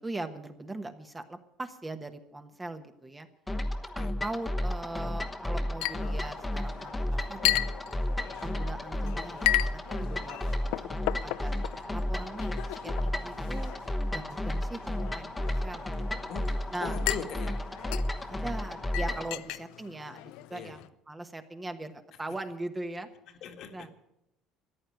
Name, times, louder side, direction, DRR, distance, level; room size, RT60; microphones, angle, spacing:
voice 1, 0.0-3.3 3.9-7.6 8.4-11.5 11.9-13.7 14.1-16.3 16.7-17.2 18.4-20.8 21.1-23.1 23.7-23.9, right 2 dB, 15° right, 7 dB, 1.2 m, -40 dB
sound 1, 3.5-19.3, left 1 dB, 10° left, 1.1 m, -33 dB
Chink clink, 5.8-20.9, left 17 dB, 80° left, 0.5 m, -36 dB
voice 2, 16.8-17.6 19.1-19.3 20.5-20.8 22.3-22.4 23.3-24.1, left 6 dB, 55° left, 5 dB, 1.8 m, -40 dB
14.0 x 10.5 x 9.1 m, 0.83 s
cardioid pair, 130°, 0 cm